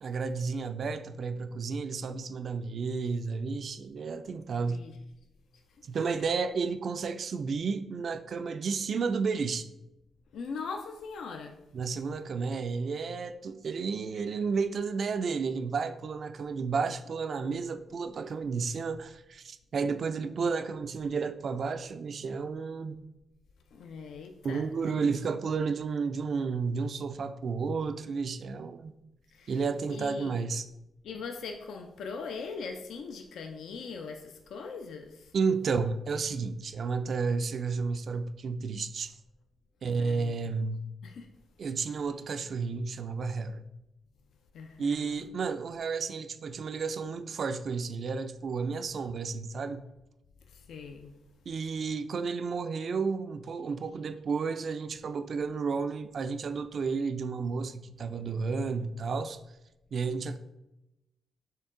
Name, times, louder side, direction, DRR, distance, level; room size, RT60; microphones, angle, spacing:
voice 1, 0.0-4.9 5.8-9.7 11.7-23.0 24.4-28.9 29.5-30.6 35.3-39.1 39.8-40.8 41.6-43.7 44.8-49.8 51.5-59.4 59.9-60.4, right 5 dB, 60° right, 0.3 m, -32 dB
voice 2, 10.3-11.6 20.3-20.5 23.7-25.1 29.3-29.6 29.9-30.5 31.0-35.3 40.0-40.5 41.0-41.3 44.5-45.2 50.5-51.1, left 5 dB, 80° left, 0.3 m, -41 dB
4.4 x 3.1 x 3.6 m
cardioid pair, 65°, 0 cm